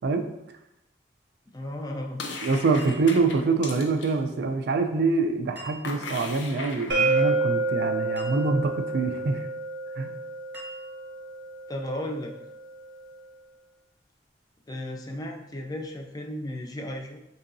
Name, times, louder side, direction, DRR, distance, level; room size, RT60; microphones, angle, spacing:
voice 1, 1.5-2.2 11.7-12.3 14.7-17.2, left 1 dB, 20° left, 2 dB, 0.4 m, -34 dB
sound 1, 2.2-4.1 5.8-7.2, left 3 dB, 90° left, 0.6 m, -37 dB
voice 2, 2.4-9.5 10.0-10.2, right 4 dB, 60° right, 6 dB, 0.4 m, -25 dB
sound 2, 2.8-3.7 5.6-6.3 8.2-8.8 10.5-11.3, right 1 dB, 10° right, 0.8 m, -46 dB
sound 3, 6.9-12.7, right 3 dB, 85° right, 0.8 m, -29 dB
4.6 x 2.7 x 2.6 m, 0.89 s
head